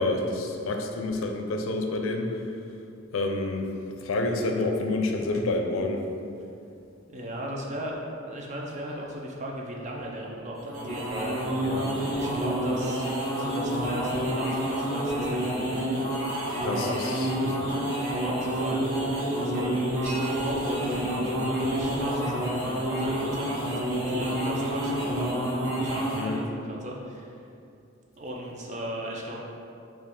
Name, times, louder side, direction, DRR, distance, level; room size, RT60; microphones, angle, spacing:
voice 1, 0.0-2.4 3.1-3.7 4.0-6.0 11.5-11.9 16.6-17.9 26.2-26.4, left 2 dB, 85° left, 3 dB, 0.4 m, -29 dB
voice 2, 7.1-8.0 8.3-11.7 12.0-13.0 13.3-15.9 16.6-17.1 18.0-18.9 19.4-23.7 24.0-25.3 25.7-27.5 28.2-29.4, equal, 35° right, -1 dB, 0.5 m, -36 dB
sound 1, 10.6-26.4, right 1 dB, 80° right, 0.9 m, -28 dB
sound 2, 20.1-21.9, right 2 dB, 5° right, 0.8 m, -43 dB
4.6 x 2.4 x 3.6 m, 2.6 s
head